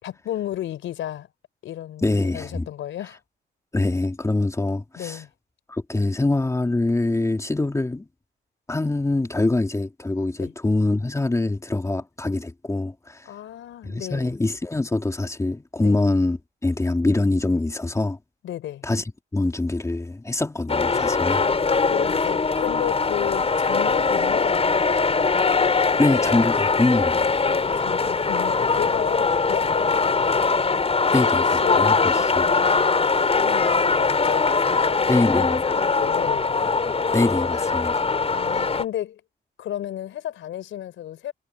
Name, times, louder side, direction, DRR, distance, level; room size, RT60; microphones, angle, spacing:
voice 1, 0.0-1.3 1.6-3.2 5.0-5.3 10.4-10.5 13.3-14.3 15.8-16.0 18.4-18.9 21.7-24.8 27.7-30.4 31.1-32.8 33.3-36.5 38.3-39.2 39.6-41.3, left 12 dB, 75° left, 4.2 m, -33 dB
voice 2, 2.0-2.7 3.7-5.2 5.7-8.1 8.7-13.3 13.8-18.2 18.8-19.0 19.3-21.4 26.0-27.4 31.1-32.5 35.1-35.6 37.1-38.0, left 2 dB, 15° left, 2.5 m, -24 dB
sound 1, 20.7-38.8, left 4 dB, 30° left, 4.8 m, -21 dB
cardioid pair, 90°, 20 cm